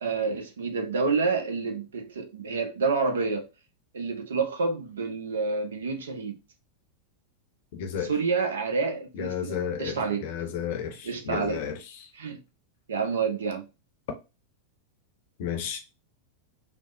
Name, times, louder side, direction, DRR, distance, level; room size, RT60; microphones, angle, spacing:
voice 1, 0.0-3.5 3.9-6.4 8.0-10.2 11.0-11.6 12.1-12.4 12.9-13.6, right 4 dB, 65° right, 0.6 m, -28 dB
voice 2, 7.7-8.1 9.1-11.8 15.4-15.8, left 8 dB, 50° left, 0.6 m, -32 dB
3.4 x 2.1 x 2.4 m
figure-of-eight pair, 90°, 0 cm